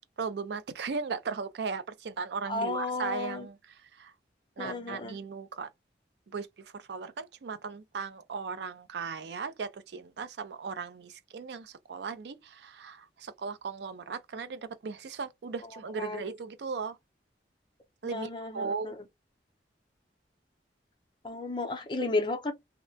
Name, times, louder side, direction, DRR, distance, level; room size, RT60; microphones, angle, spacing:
voice 1, 0.2-4.1 4.6-5.7 6.3-17.0 18.0-18.9, right 5 dB, 70° right, 0.4 m, -37 dB
voice 2, 2.5-3.5 4.6-5.2 16.0-16.2 18.0-18.9 21.2-22.5, left 2 dB, 25° left, 0.5 m, -33 dB
2.8 x 2.1 x 2.6 m
head